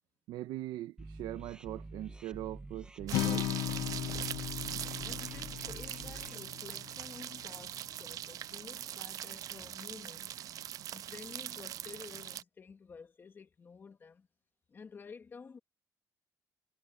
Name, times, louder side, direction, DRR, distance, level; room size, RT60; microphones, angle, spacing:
voice 1, 0.3-3.5, right 14 dB, 90° right, 1.5 m, -41 dB
sound 1, 1.0-6.3, right 2 dB, 10° right, 1.4 m, -48 dB
Acoustic guitar, 3.1-7.3, left 16 dB, 80° left, 0.4 m, -37 dB
sound 2, 3.1-12.4, right 12 dB, 55° right, 0.3 m, -42 dB
voice 2, 5.0-10.3 10.9-14.3 14.7-15.6, left 5 dB, 30° left, 2.4 m, -51 dB
cardioid pair, 140°, 7 cm